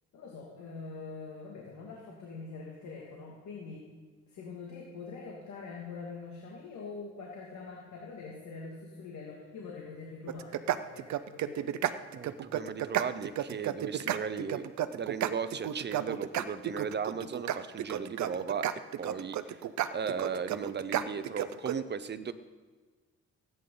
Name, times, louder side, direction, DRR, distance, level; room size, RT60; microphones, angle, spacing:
voice 1, 0.1-3.9 4.3-12.0, left 4 dB, 70° left, -3 dB, 2.4 m, -44 dB
sound 1, 10.3-21.8, right 11 dB, 70° right, 0.7 m, -32 dB
voice 2, 12.2-14.7 14.9-18.7 19.0-19.6 19.9-22.3, right 6 dB, 35° right, 13 dB, 0.8 m, -36 dB
17.5 x 9.6 x 3.9 m, 1.4 s
cardioid pair, 90°, 30 cm